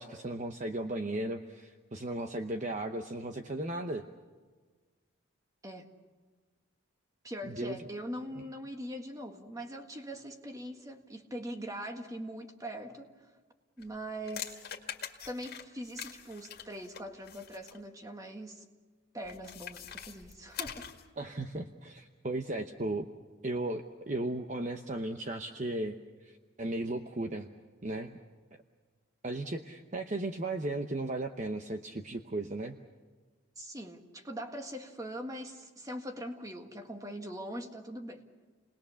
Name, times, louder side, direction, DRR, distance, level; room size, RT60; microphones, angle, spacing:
voice 1, 0.0-4.1 7.4-7.8 21.2-23.0 23.4-26.0 26.2-27.5 27.8-28.2 29.2-32.7, right 2 dB, 35° right, 6 dB, 0.9 m, -36 dB
voice 2, 7.2-13.3 13.8-14.6 15.3-18.7 19.1-20.9 33.6-38.2, equal, 15° right, 4 dB, 1.7 m, -42 dB
sound 1, 13.8-17.8 19.2-21.1, left 9 dB, 45° left, 2.1 m, -44 dB
29.5 x 20.5 x 7.0 m, 1.4 s
head